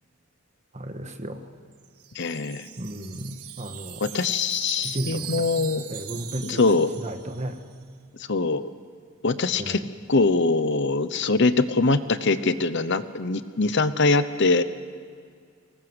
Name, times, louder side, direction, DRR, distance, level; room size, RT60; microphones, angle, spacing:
voice 1, 0.7-1.4 2.8-4.0 4.8-5.4 5.9-6.7 7.0-7.6 9.6-9.8, right 1 dB, 30° right, 7 dB, 1.5 m, -34 dB
Wind chime, 1.7-7.7, right 11 dB, 85° right, 1.3 m, -40 dB
voice 2, 2.2-2.7 4.0-5.8 6.4-6.9 8.3-8.7 9.2-9.8 10.1-14.6, left 3 dB, 55° left, 13 dB, 0.8 m, -23 dB
23.5 x 19.5 x 7.9 m, 2.1 s
head